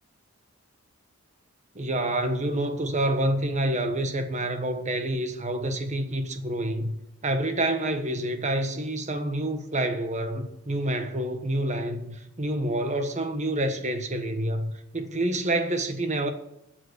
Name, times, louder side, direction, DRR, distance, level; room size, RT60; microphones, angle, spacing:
voice 1, 1.7-7.0 7.2-16.3, right 1 dB, 35° right, 1.3 m, -28 dB
12.5 x 7.7 x 7.0 m
head